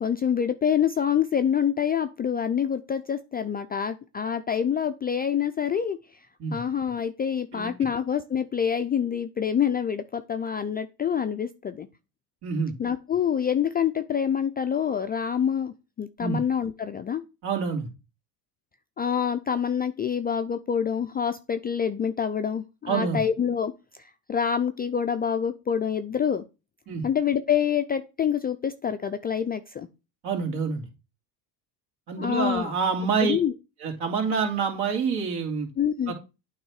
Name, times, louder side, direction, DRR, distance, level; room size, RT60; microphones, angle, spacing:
voice 1, 0.0-6.0 6.5-11.9 12.8-17.2 19.0-26.4 27.0-29.9 32.2-32.7 33.2-33.5 35.8-36.1, left 8 dB, 20° left, 9 dB, 0.3 m, -26 dB
voice 2, 12.4-12.7 16.2-16.4 17.4-17.9 22.9-23.2 26.9-27.0 30.2-30.8 32.1-33.4 33.8-35.7 36.1-36.2, right 5 dB, 55° right, 3 dB, 2.7 m, -27 dB
8.7 x 3.3 x 4.7 m, 0.29 s
supercardioid pair, 90°, 49 cm